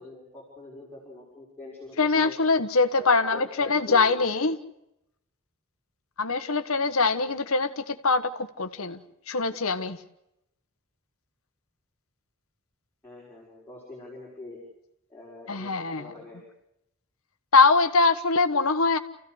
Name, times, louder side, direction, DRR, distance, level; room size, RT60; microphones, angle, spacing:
voice 1, 0.0-2.0 2.2-2.3 3.0-4.3 13.0-14.6 15.1-15.7 16.0-16.4, left 2 dB, 10° left, -6 dB, 6.1 m, -44 dB
voice 2, 2.0-4.6 6.2-9.0 9.3-10.0 15.5-16.1 17.5-19.0, left 4 dB, 75° left, 9 dB, 1.4 m, -23 dB
29.5 x 16.0 x 8.1 m, 0.85 s
head